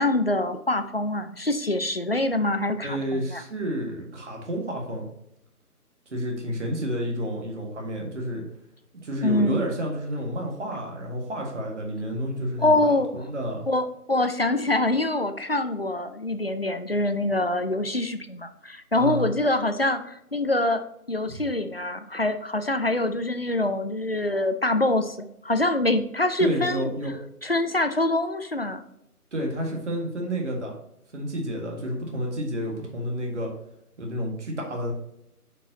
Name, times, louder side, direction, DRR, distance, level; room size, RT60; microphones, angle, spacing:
voice 1, 0.0-3.4 9.2-9.6 12.6-13.3 13.7-20.8 21.1-26.9 27.4-28.8, left 2 dB, 45° left, 9 dB, 0.4 m, -25 dB
voice 2, 2.8-5.1 6.1-8.5 9.0-12.8 13.1-13.7 19.0-19.3 21.3-21.4 26.4-27.1 29.3-30.7 31.1-33.5 34.0-34.9, equal, 50° right, 0 dB, 1.8 m, -30 dB
9.0 x 4.6 x 2.8 m, 0.79 s
figure-of-eight pair, 160°, 45 cm